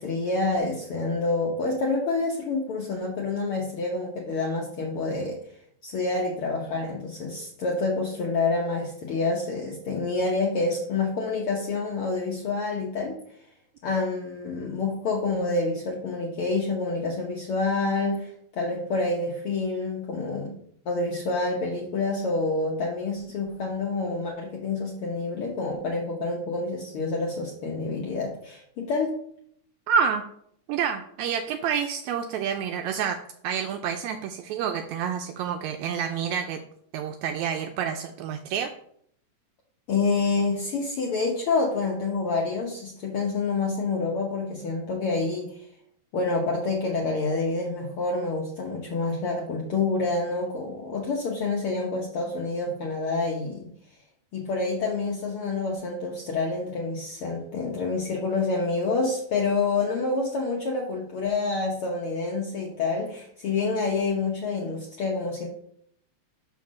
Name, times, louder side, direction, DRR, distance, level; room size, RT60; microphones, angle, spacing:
voice 1, 0.0-5.4 5.8-13.2 13.8-20.6 20.8-29.2 39.9-45.6 46.1-53.7 54.3-65.5, left 3 dB, 60° left, -1 dB, 1.6 m, -27 dB
voice 2, 29.9-30.2 30.7-33.2 33.4-36.6 36.9-38.7, right 7 dB, 80° right, 6 dB, 1.8 m, -28 dB
5.8 x 4.7 x 6.2 m, 0.68 s
omnidirectional pair, 3.3 m